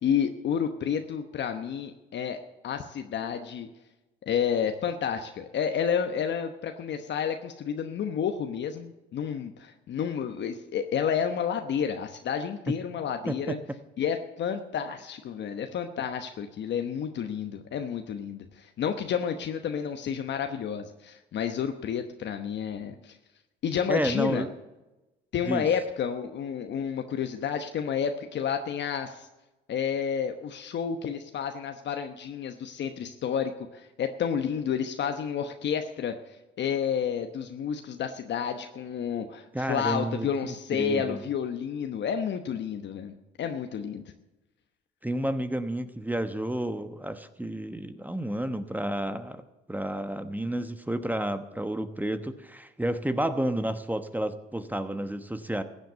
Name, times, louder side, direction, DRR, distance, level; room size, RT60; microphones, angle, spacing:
voice 1, 0.0-2.4 2.6-3.7 4.3-13.6 14.0-23.2 23.6-24.4 25.3-29.3 29.7-36.1 36.6-44.1, left 7 dB, 60° left, 6 dB, 1.0 m, -30 dB
voice 2, 13.3-13.6 23.9-24.5 25.5-25.6 39.5-41.2 45.0-49.4 49.7-55.6, right 1 dB, 10° right, 10 dB, 1.1 m, -31 dB
15.0 x 7.9 x 8.3 m, 1.0 s
supercardioid pair, 65°, 20 cm